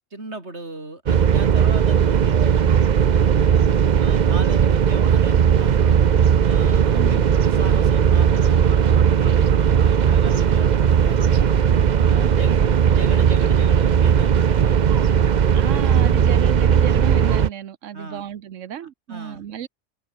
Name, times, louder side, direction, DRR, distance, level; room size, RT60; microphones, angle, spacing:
voice 1, 0.1-3.6 4.0-6.1 6.4-11.6 12.0-12.6 12.9-15.2 15.6-15.9 17.9-18.3 19.1-19.4, right 2 dB, 60° right, 5.0 m, -37 dB
sound 1, 1.1-17.5, right 8 dB, 45° right, 0.7 m, -17 dB
voice 2, 6.9-7.3 12.1-12.7 15.5-19.7, right 10 dB, 85° right, 1.3 m, -33 dB
omnidirectional pair, 1.3 m